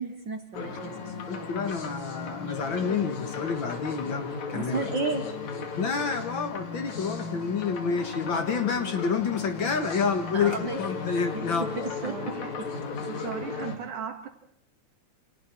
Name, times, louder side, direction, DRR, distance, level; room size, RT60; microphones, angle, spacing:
voice 1, 0.0-1.1 4.5-5.3 10.3-10.8 11.3-11.5 11.8-12.1 12.6-12.7, right 3 dB, 45° right, 1.8 m, -32 dB
sound 1, 0.5-13.8, left 4 dB, 70° left, 3.6 m, -35 dB
voice 2, 1.3-5.1 5.8-11.7, left 5 dB, 50° left, 1.9 m, -29 dB
voice 3, 12.0-12.6 13.0-14.3, right 8 dB, 80° right, 3.6 m, -37 dB
29.5 x 27.5 x 4.6 m
omnidirectional pair, 3.4 m